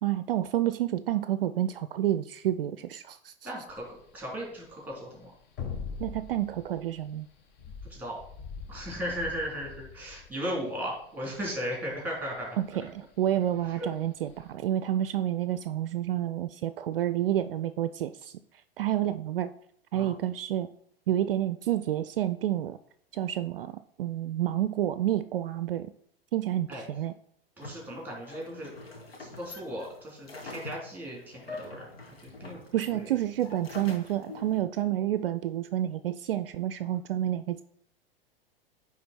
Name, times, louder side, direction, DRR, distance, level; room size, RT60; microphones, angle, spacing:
voice 1, 0.0-3.3 6.0-7.3 12.6-18.3 18.8-19.5 19.9-20.7 21.1-22.8 23.1-25.9 26.3-27.1 32.7-37.6, right 12 dB, 65° right, 13 dB, 0.4 m, -29 dB
voice 2, 3.4-5.3 7.9-8.2 8.7-12.6 13.6-13.9 19.9-20.1 26.7-26.8 27.6-28.7 29.2-32.6 32.9-33.1, equal, 5° right, -2 dB, 3.2 m, -36 dB
sound 1, 3.7-14.5, left 6 dB, 35° left, 1.0 m, -43 dB
sound 2, 27.6-34.6, left 2 dB, 80° left, 1.7 m, -45 dB
9.4 x 3.6 x 4.3 m, 0.66 s
figure-of-eight pair, 95°, 30 cm